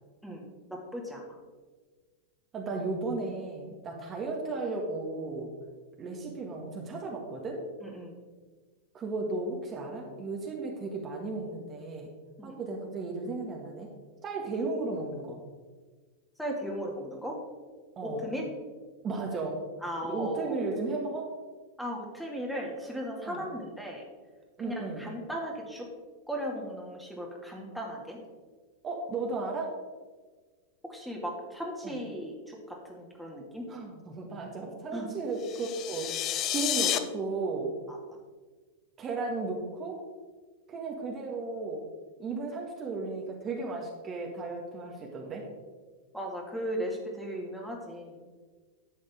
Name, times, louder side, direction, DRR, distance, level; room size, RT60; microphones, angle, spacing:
voice 1, 0.7-1.4 7.8-8.2 12.4-12.6 16.4-17.4 18.0-18.5 19.8-20.6 21.8-24.0 24.6-25.9 26.3-28.2 30.8-33.7 34.9-35.1 37.9-38.2 46.1-48.3, equal, ahead, -1 dB, 2.2 m, -37 dB
voice 2, 2.5-5.5 6.0-7.6 8.9-12.1 12.4-13.9 14.2-15.4 17.9-18.3 19.0-19.6 20.0-21.3 23.2-23.4 24.6-25.1 28.8-29.7 31.8-32.0 33.7-37.7 39.0-40.0 40.7-41.9 42.2-45.5, right 3 dB, 30° right, 0 dB, 1.8 m, -35 dB
sound 1, 35.4-37.0, left 11 dB, 40° left, 0.6 m, -30 dB
11.5 x 7.6 x 3.6 m, 1.4 s
figure-of-eight pair, 95°, 0 cm